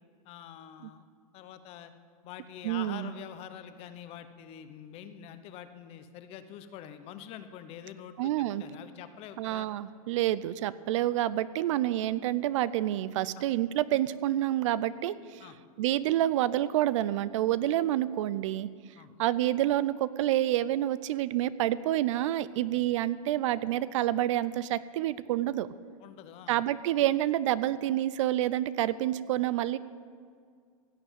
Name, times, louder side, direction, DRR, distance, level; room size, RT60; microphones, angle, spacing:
voice 1, 0.2-1.0 1.3-1.9 2.2-9.7 15.4-15.6 19.0-19.1 22.7-22.8 26.0-26.6, left 10 dB, 30° left, 10 dB, 0.9 m, -46 dB
voice 2, 2.6-3.1 8.2-8.6 9.4-15.5 15.8-18.7 19.2-25.7 26.5-29.8, right 13 dB, 55° right, 17 dB, 0.5 m, -28 dB
16.5 x 7.0 x 8.9 m, 2.2 s
hypercardioid pair, 145°, 19 cm